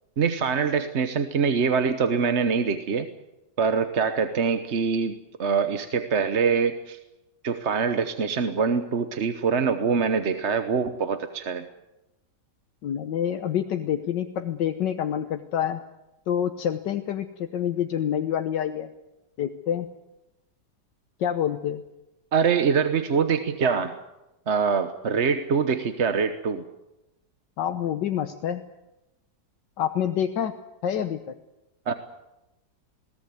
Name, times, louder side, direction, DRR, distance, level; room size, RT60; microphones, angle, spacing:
voice 1, 0.2-3.1 3.6-5.1 5.4-7.0 7.4-11.6 22.3-24.0 24.5-26.6 31.9-32.0, right 6 dB, 45° right, 9 dB, 1.1 m, -24 dB
voice 2, 12.8-15.8 16.3-18.9 19.4-19.9 21.2-21.8 27.6-28.6 29.8-30.6 30.8-31.3, left 9 dB, 80° left, 7 dB, 1.6 m, -27 dB
21.0 x 18.0 x 9.5 m, 0.96 s
omnidirectional pair, 1.9 m